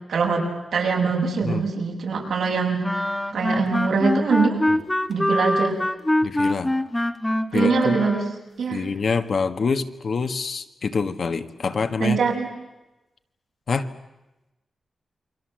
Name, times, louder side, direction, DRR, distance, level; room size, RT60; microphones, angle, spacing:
voice 1, 0.1-0.4 0.7-4.7 5.1-5.8 7.5-8.2 8.6-8.8 12.0-12.5, right 5 dB, 85° right, 0 dB, 7.0 m, -23 dB
sound 1, 2.8-8.5, left 1 dB, 10° left, 1.2 m, -24 dB
voice 2, 6.2-6.7 7.5-8.0 8.7-12.2 13.7-13.9, left 5 dB, 55° left, 8 dB, 1.5 m, -26 dB
28.5 x 24.0 x 7.7 m, 0.99 s
wide cardioid pair, 150°, 0 cm